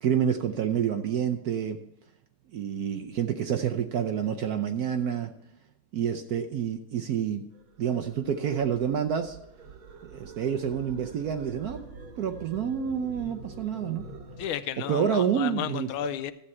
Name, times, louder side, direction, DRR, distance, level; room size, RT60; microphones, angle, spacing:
voice 1, 0.0-1.8 2.5-5.3 5.9-7.4 7.8-9.4 10.0-11.8 12.2-14.0 14.9-15.9, right 8 dB, 65° right, 6 dB, 1.0 m, -28 dB
sound 1, 7.5-14.5, right 3 dB, 85° right, 2.2 m, -46 dB
voice 2, 14.4-16.3, left 11 dB, 90° left, 12 dB, 1.5 m, -33 dB
12.0 x 8.0 x 4.3 m, 0.85 s
omnidirectional pair, 2.2 m